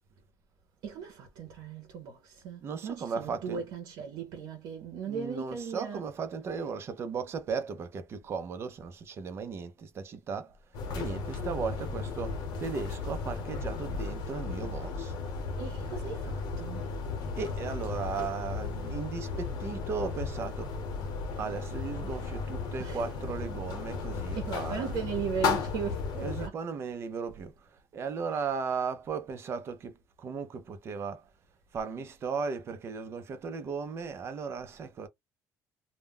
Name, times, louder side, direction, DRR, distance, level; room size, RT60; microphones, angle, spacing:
voice 1, 0.8-6.0 15.6-16.9 22.8-23.0 24.3-26.6, right 6 dB, 90° right, 0.7 m, -37 dB
voice 2, 2.6-3.6 5.0-10.6 10.9-15.1 17.4-20.7 21.4-24.9 26.2-31.3 31.7-35.1, right 5 dB, 40° right, 0.5 m, -36 dB
sound 1, 10.7-26.5, left 4 dB, 85° left, 0.8 m, -35 dB
2.2 x 2.1 x 3.4 m
cardioid pair, 155°, 7 cm